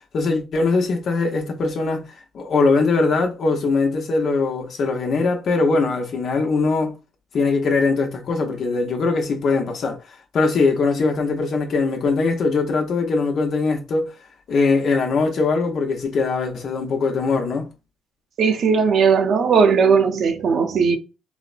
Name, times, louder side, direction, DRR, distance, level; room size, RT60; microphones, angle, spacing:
voice 1, 0.1-2.1 2.3-6.9 7.3-14.1 14.5-17.7, left 4 dB, 60° left, 0.8 m, -21 dB
voice 2, 18.4-21.0, right 5 dB, 65° right, 0.6 m, -17 dB
4.0 x 2.1 x 2.5 m
cardioid pair, 90°, 0 cm